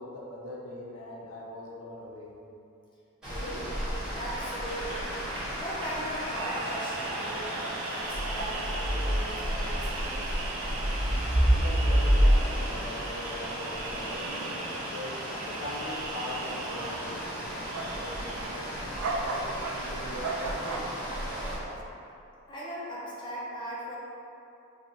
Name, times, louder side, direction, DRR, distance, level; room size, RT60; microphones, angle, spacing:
voice 1, 0.0-2.3 11.6-15.2 15.5-18.7 19.3-19.5 19.9-20.9, left 1 dB, 90° left, -3 dB, 0.6 m, -41 dB
sound 1, 3.2-21.5, equal, 5° right, 1.4 m, -31 dB
voice 2, 3.3-3.7 4.1-5.1 5.6-7.6 7.9-10.4 22.5-24.0, equal, 20° left, -6 dB, 0.4 m, -38 dB
Applause / Crowd, 3.9-9.7 10.2-10.3, right 1 dB, 60° right, 0.8 m, -41 dB
sound 2, 6.1-21.8, right 3 dB, 80° right, 0.3 m, -38 dB
3.9 x 2.8 x 2.6 m, 2.7 s
head